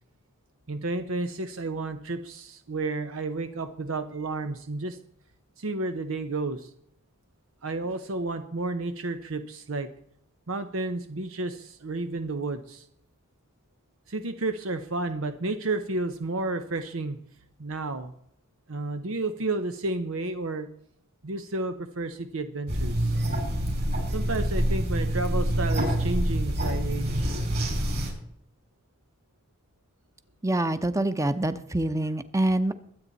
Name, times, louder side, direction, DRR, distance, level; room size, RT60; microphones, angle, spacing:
voice 1, 0.7-5.0 5.6-6.7 7.6-9.9 10.5-12.9 14.1-17.2 17.6-18.1 18.7-20.7 21.2-23.2 24.1-27.3, right 2 dB, 90° right, 9 dB, 0.9 m, -31 dB
sound 1, 22.7-28.1, equal, 55° right, 5.6 m, -26 dB
voice 2, 30.4-32.7, right 1 dB, 15° right, 11 dB, 0.8 m, -25 dB
23.0 x 8.7 x 4.1 m, 0.70 s
head